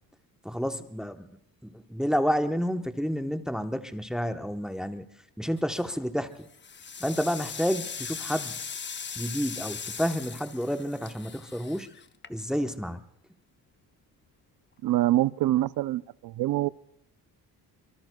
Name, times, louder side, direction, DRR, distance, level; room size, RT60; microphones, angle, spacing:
voice 1, 0.4-5.0 5.4-6.5 7.0-8.6 9.1-11.9 12.3-13.0, equal, ahead, 7 dB, 1.0 m, -30 dB
sound 1, 5.6-6.0 6.4-12.7, left 6 dB, 30° left, 0.8 m, -39 dB
voice 2, 14.8-16.7, right 15 dB, 65° right, 17 dB, 0.6 m, -25 dB
25.0 x 23.0 x 2.3 m, 0.72 s
cardioid pair, 90°, 38 cm